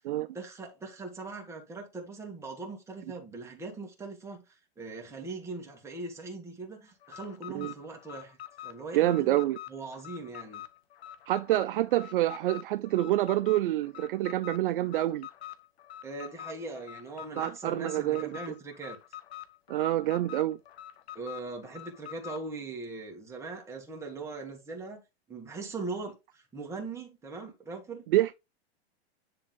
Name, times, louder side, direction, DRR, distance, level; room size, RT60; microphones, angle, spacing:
voice 1, 0.3-8.4 8.6-9.4 9.7-10.6 16.0-19.0 21.1-25.0 25.3-28.1, right 3 dB, 10° right, 1.9 m, -40 dB
Alarm, 7.0-22.5, left 13 dB, 80° left, 1.3 m, -45 dB
voice 2, 8.9-9.6 11.3-15.3 17.4-18.3 19.7-20.6 28.1-28.4, right 15 dB, 55° right, 0.5 m, -27 dB
10.0 x 3.6 x 3.8 m
supercardioid pair, 155°, 32 cm